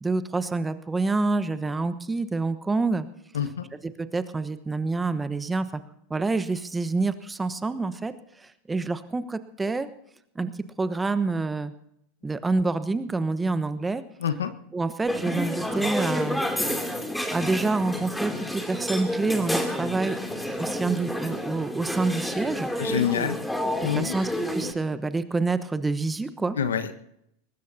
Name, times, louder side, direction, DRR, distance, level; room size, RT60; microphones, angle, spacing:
voice 1, 0.0-3.1 3.8-5.8 6.1-8.1 8.4-9.9 10.3-10.5 10.8-11.7 12.2-14.0 14.7-16.4 17.3-20.2 20.6-22.7 23.9-26.6, right 3 dB, 15° right, 12 dB, 1.1 m, -27 dB
voice 2, 3.3-3.7 14.2-14.5 22.8-23.4 23.8-24.2 26.5-27.0, left 8 dB, 80° left, 10 dB, 1.3 m, -26 dB
sound 1, 15.1-24.7, left 1 dB, 5° left, 2.8 m, -30 dB
22.5 x 20.0 x 2.8 m, 0.76 s
hypercardioid pair, 90°, 0 cm